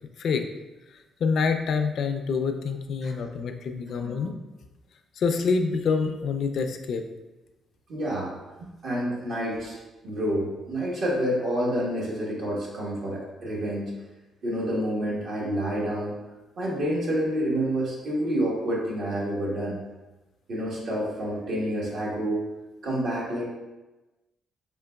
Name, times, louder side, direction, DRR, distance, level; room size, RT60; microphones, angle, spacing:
voice 1, 0.9-4.3 5.2-7.0, left 5 dB, 65° left, 6 dB, 0.4 m, -26 dB
voice 2, 7.9-9.8 10.0-13.9 14.4-16.2 16.6-19.8 20.5-22.4 22.8-23.5, right 1 dB, 65° right, -5 dB, 1.2 m, -28 dB
4.4 x 3.7 x 2.2 m, 1.1 s
cardioid pair, 90°, 0 cm